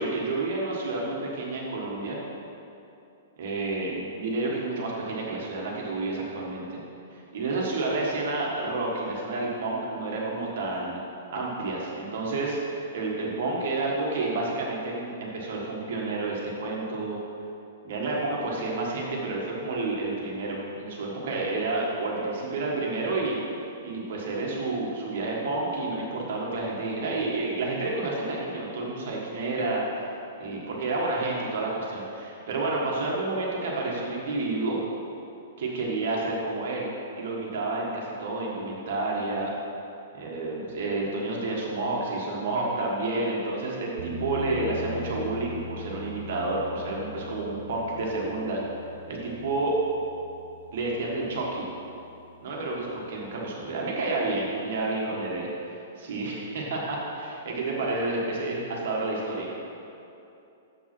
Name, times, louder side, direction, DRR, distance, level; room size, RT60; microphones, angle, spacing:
voice 1, 0.0-2.2 3.4-6.8 7.3-11.0 11.3-17.2 17.8-23.4 23.8-30.0 30.4-34.8 35.6-36.9 37.2-39.5 40.1-48.6 49.1-49.7 50.7-51.7 52.4-59.6, right 2 dB, 45° right, -3 dB, 1.5 m, -30 dB
sound 1, 44.0-52.9, left 2 dB, 75° right, 0.9 m, -43 dB
7.2 x 5.8 x 6.0 m, 2.7 s
hypercardioid pair, 180°, 0 cm